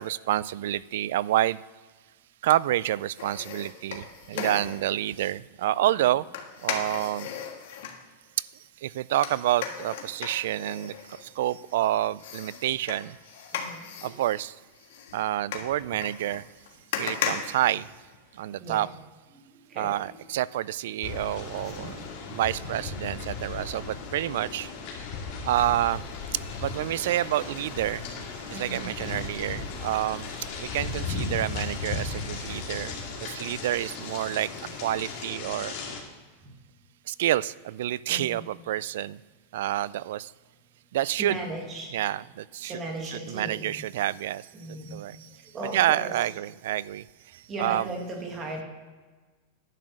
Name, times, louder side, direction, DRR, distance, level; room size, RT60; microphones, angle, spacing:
voice 1, 0.0-1.6 2.4-6.2 6.6-7.3 8.8-10.9 11.2-13.2 14.0-14.5 15.1-16.4 17.0-17.9 18.4-18.9 19.8-22.0 22.3-24.7 25.4-26.0 26.6-28.0 28.5-30.3 30.6-32.9 33.2-34.5 34.8-35.7 37.1-39.2 39.5-40.3 40.9-41.4 41.9-42.8 43.1-44.4 44.9-45.2 45.6-47.0 47.6-47.9, right 13 dB, 65° right, 20 dB, 0.3 m, -28 dB
sound 1, 3.2-5.0 6.3-8.0 9.2-11.7 12.2-18.4 18.8-18.9, left 7 dB, 65° left, 1.5 m, -36 dB
voice 2, 13.5-13.9 18.6-18.9 19.3-20.2 21.6-22.4 28.5-29.1 36.4-36.5 38.1-38.5 41.2-42.0 42.6-43.8 44.5-46.2 47.5-48.6, right 2 dB, 20° right, 1 dB, 2.0 m, -38 dB
sound 2, 21.0-36.0, left 4 dB, 45° left, 2.5 m, -36 dB
10.5 x 6.1 x 6.4 m, 1.3 s
supercardioid pair, 165°, 0 cm